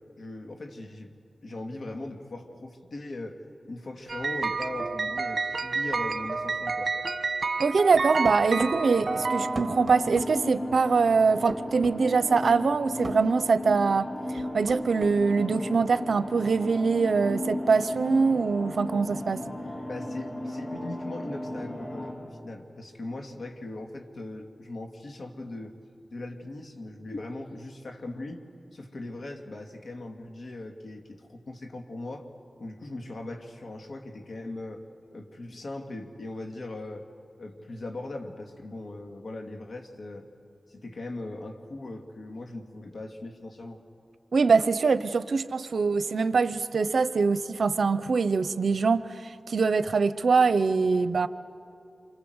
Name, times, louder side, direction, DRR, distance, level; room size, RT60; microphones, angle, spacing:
voice 1, 0.2-1.1 1.4-3.4 3.6-6.9 19.9-25.7 26.1-28.4 28.7-32.3 32.6-34.8 35.1-37.1 37.4-40.3 40.7-43.8, left 2 dB, 75° left, 4 dB, 2.4 m, -39 dB
sound 1, 4.1-10.1, right 4 dB, 65° right, 1.3 m, -30 dB
voice 2, 7.6-19.4 44.3-51.3, right 4 dB, 85° right, 13 dB, 0.8 m, -23 dB
sound 2, 7.9-8.8 9.5-10.3 11.5-12.0 13.0-13.2 14.4-15.2, right 3 dB, 50° right, 1.6 m, -38 dB
sound 3, 8.5-22.1, left 1 dB, 40° left, 7.4 m, -35 dB
28.0 x 25.5 x 8.0 m, 2.6 s
cardioid pair, 55°, 0 cm